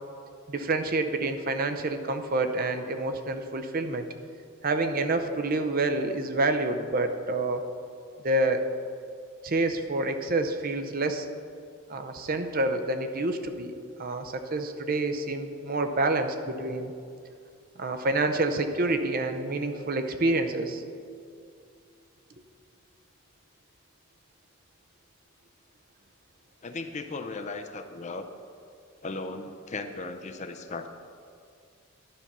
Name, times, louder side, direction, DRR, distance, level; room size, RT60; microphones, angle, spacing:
voice 1, 0.5-4.1 4.6-7.6 8.2-8.7 9.4-11.3 11.9-13.7 14.0-16.9 17.8-20.8, right 2 dB, 40° right, 7 dB, 0.6 m, -28 dB
voice 2, 26.6-28.2 29.0-30.9, left 3 dB, 30° left, 7 dB, 0.5 m, -36 dB
11.5 x 5.6 x 6.0 m, 2.3 s
head